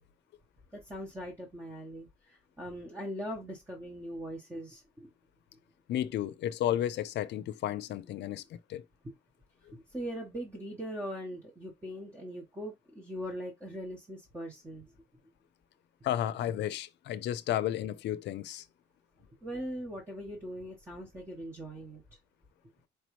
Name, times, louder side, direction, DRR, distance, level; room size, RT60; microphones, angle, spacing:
voice 1, 0.7-5.1 9.7-14.9 19.4-22.0, equal, 15° right, 1.0 m, -41 dB
voice 2, 5.9-8.8 16.0-18.6, left 12 dB, 70° left, 0.5 m, -33 dB
4.7 x 3.0 x 3.1 m
cardioid pair, 140°, 19 cm